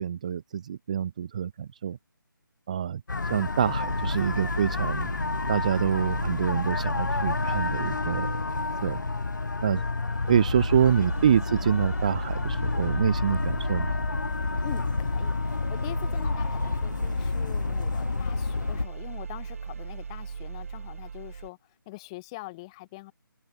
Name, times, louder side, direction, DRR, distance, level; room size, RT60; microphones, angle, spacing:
voice 1, 0.0-2.0 2.7-3.0 3.3-5.1 5.5-9.0 9.6-9.8 10.3-14.0, right 8 dB, 20° right, 0.5 m, -26 dB
sound 1, 3.1-18.9, left 3 dB, 55° left, 1.8 m, -29 dB
sound 2, 3.8-21.5, right 6 dB, 40° right, 1.7 m, -38 dB
voice 2, 14.6-21.6 21.9-23.1, left 21 dB, 15° left, 1.4 m, -43 dB
figure-of-eight pair, 150°, 12 cm